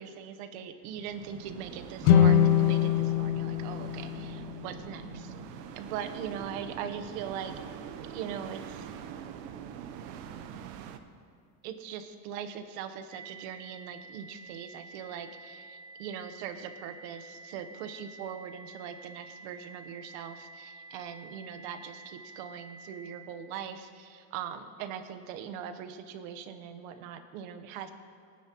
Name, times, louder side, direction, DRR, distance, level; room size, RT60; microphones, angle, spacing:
voice 1, 0.0-5.3 5.7-7.5 8.1-8.8 11.6-27.9, right 8 dB, 60° right, 8 dB, 1.0 m, -41 dB
sound 1, 0.8-11.0, right 8 dB, 85° right, 1.0 m, -43 dB
sound 2, 2.0-5.3, left 9 dB, 80° left, 0.9 m, -24 dB
sound 3, 13.1-23.1, right 3 dB, 15° right, 1.5 m, -49 dB
22.0 x 9.7 x 2.9 m, 2.3 s
cardioid pair, 175°, 48 cm